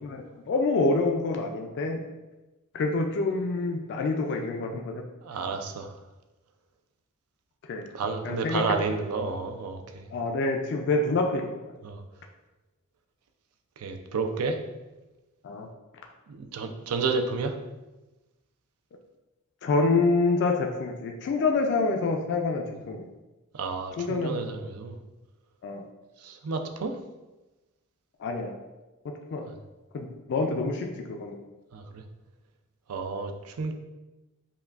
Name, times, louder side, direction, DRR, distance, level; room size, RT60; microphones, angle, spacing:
voice 1, 0.0-2.0 2.7-5.0 7.7-7.8 8.2-8.7 10.1-11.7 15.4-15.7 19.6-23.0 24.0-24.4 25.6-25.8 28.2-28.5 29.3-29.4 29.9-31.4, left 3 dB, 50° left, 2 dB, 0.3 m, -27 dB
voice 2, 5.2-5.9 7.9-10.1 11.8-12.0 13.8-14.6 16.3-17.6 23.5-25.0 26.2-27.0 31.7-32.0 32.9-33.7, right 4 dB, 85° right, 6 dB, 0.4 m, -31 dB
5.5 x 2.2 x 2.4 m, 1.1 s
head